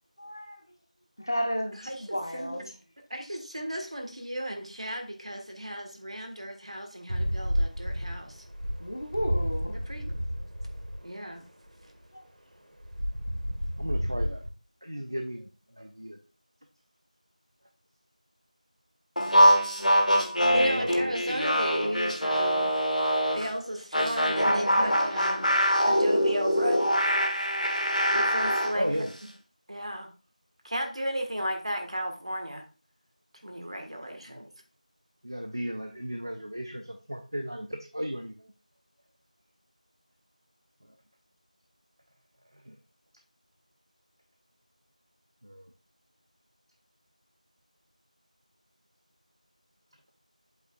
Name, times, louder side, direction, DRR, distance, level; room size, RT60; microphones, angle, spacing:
voice 1, 0.2-0.6 1.2-2.7 8.8-9.8 12.1-12.2, equal, 30° left, 0.9 m, -33 dB
voice 2, 1.7-2.6 3.1-8.4 9.9-10.0 11.0-11.5 20.5-22.7 23.3-25.6 25.8-26.9 28.1-29.1 29.7-30.1 30.6-32.6 33.4-34.5, equal, 50° right, 1.6 m, -34 dB
sound 1, 7.1-11.0 12.8-14.5, equal, 85° right, 1.5 m, -31 dB
voice 3, 13.8-14.4 14.8-15.5 15.8-16.2 20.4-21.7 28.7-29.1 34.3-34.5 35.2-38.5 42.6-42.8 45.4-45.7, equal, 35° right, 0.5 m, -35 dB
sound 2, 19.2-23.5 23.9-28.8, equal, 70° left, 1.6 m, -24 dB
8.1 x 6.9 x 2.4 m
figure-of-eight pair, 175°, 4 cm